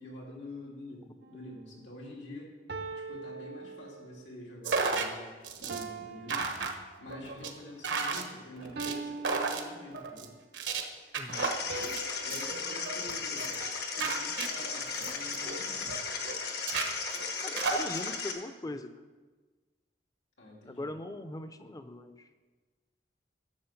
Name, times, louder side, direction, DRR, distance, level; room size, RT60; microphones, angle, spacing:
voice 1, 0.0-2.5 2.9-6.5 7.0-10.3 12.2-13.6 13.9-15.9 20.4-20.9, left 1 dB, 90° left, -2 dB, 2.8 m, -47 dB
sound 1, 1.2-1.6 2.7-4.3 5.7-7.3 8.8-10.4 11.7-14.1, right 4 dB, 65° right, 0.6 m, -43 dB
sound 2, 4.6-5.1 5.4-5.8 6.3-6.7 7.1-7.5 7.8-8.2 8.6-8.9 9.2-9.6 9.9-10.3 10.5-10.8 11.1-12.0 12.3-12.6 12.9-13.1 13.4-13.7 13.9-16.0 16.2-16.4 16.7-17.8, right 4 dB, 85° right, 1.2 m, -33 dB
voice 2, 11.2-11.5 11.8-12.0 17.4-18.9 20.7-22.3, left 1 dB, 20° left, 10 dB, 0.6 m, -40 dB
sound 3, 11.3-18.3, left 5 dB, 60° left, 1.2 m, -36 dB
10.5 x 7.2 x 5.8 m, 1.3 s
head